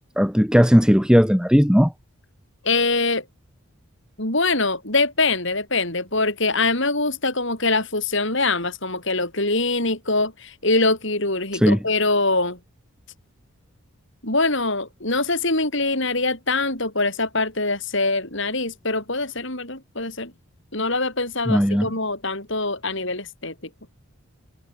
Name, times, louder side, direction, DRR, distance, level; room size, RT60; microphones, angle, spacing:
voice 1, 0.2-1.9 11.6-11.8 21.5-21.9, equal, 5° right, 3.4 m, -16 dB
voice 2, 2.6-3.2 4.2-12.6 14.2-20.3 20.7-23.5, left 3 dB, 55° left, 6.7 m, -23 dB
head